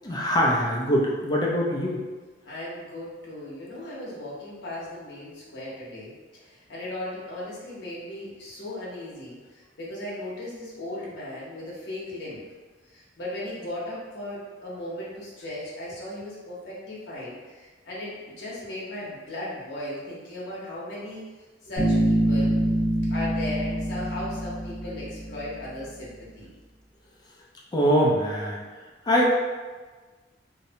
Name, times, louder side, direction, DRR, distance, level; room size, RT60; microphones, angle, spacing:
voice 1, 0.0-2.0 27.7-28.6 29.1-29.4, equal, 20° left, -2 dB, 0.4 m, -23 dB
voice 2, 2.4-6.1 6.4-12.4 12.9-21.2 21.6-22.6 23.1-26.5, left 1 dB, 65° left, -7 dB, 0.7 m, -37 dB
Bass guitar, 21.8-25.5, equal, 45° right, 0.9 m, -25 dB
2.6 x 2.1 x 2.7 m, 1.3 s
head